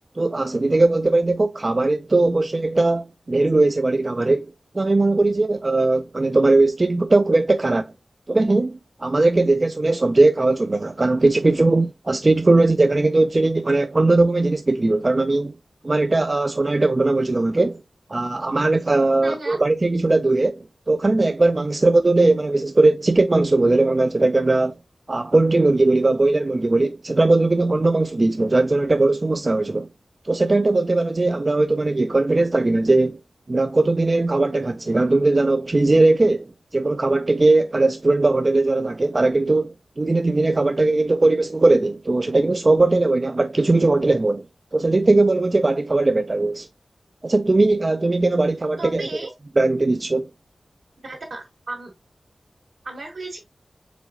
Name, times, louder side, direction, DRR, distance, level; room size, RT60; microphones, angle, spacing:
voice 1, 0.2-4.5 4.7-7.9 8.3-15.5 15.8-17.8 18.1-24.8 25.1-29.9 30.2-33.2 33.5-36.5 36.7-44.5 44.7-46.7 47.2-49.1 49.6-50.3, right 2 dB, 40° right, 0.3 m, -19 dB
voice 2, 19.2-19.6 48.8-49.3 51.0-51.9 52.8-53.4, right 2 dB, 75° right, 1.9 m, -34 dB
5.0 x 3.7 x 2.4 m
wide cardioid pair, 60°, 0 cm